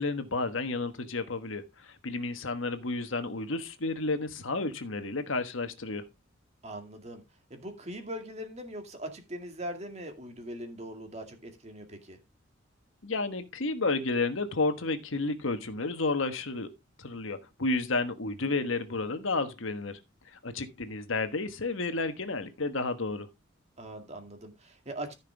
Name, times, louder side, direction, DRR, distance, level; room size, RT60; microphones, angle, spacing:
voice 1, 0.0-6.1 13.0-16.7 17.0-20.0 20.3-23.3, left 3 dB, 75° left, 1.3 m, -31 dB
voice 2, 6.6-7.2 7.5-12.2 18.4-18.5 23.8-25.1, right 1 dB, 35° right, 2.1 m, -41 dB
14.5 x 5.8 x 3.4 m
head